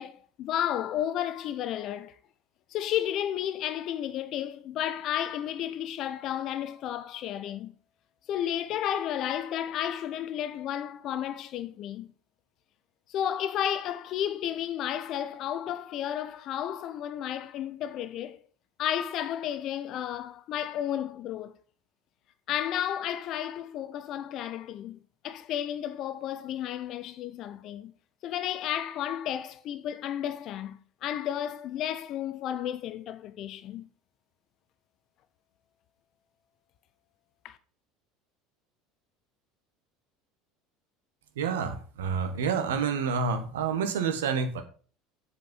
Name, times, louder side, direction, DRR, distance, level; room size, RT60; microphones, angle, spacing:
voice 1, 0.0-2.2 2.7-7.7 8.3-12.1 13.1-18.4 18.8-21.6 22.5-25.0 25.2-27.9 28.2-33.9 37.4-37.6, left 10 dB, 50° left, 0.6 m, -32 dB
voice 2, 41.3-44.6, right 6 dB, 75° right, 1.4 m, -28 dB
7.7 x 5.1 x 5.4 m
hypercardioid pair, 70°, 0 cm